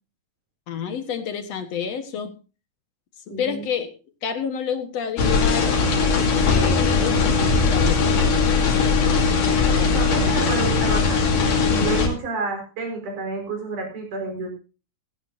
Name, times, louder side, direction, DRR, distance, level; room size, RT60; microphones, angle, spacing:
voice 1, 0.7-2.3 3.4-3.9 4.2-5.8 6.1-8.5, left 7 dB, 60° left, 8 dB, 2.5 m, -29 dB
voice 2, 3.3-3.7 9.7-11.4 11.7-14.6, right 3 dB, 85° right, 2 dB, 6.6 m, -30 dB
sound 1, 5.2-12.1, left 4 dB, 85° left, 4.2 m, -19 dB
17.0 x 15.0 x 2.7 m, 0.33 s
omnidirectional pair, 3.5 m